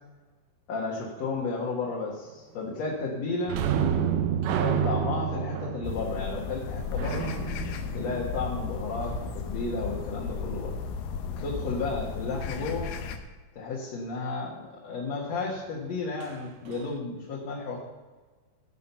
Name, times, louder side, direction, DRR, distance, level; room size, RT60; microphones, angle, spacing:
voice 1, 0.7-3.6 4.6-7.4 7.9-10.8 11.4-12.9 13.6-17.8, left 3 dB, 55° left, -3 dB, 2.5 m, -33 dB
sound 1, 3.5-8.9 16.2-16.3 16.7-16.9, right 8 dB, 75° right, 2.2 m, -29 dB
sound 2, 5.8-13.2, left 5 dB, 85° left, 2.6 m, -34 dB
15.5 x 6.2 x 5.6 m, 1.3 s
omnidirectional pair, 3.9 m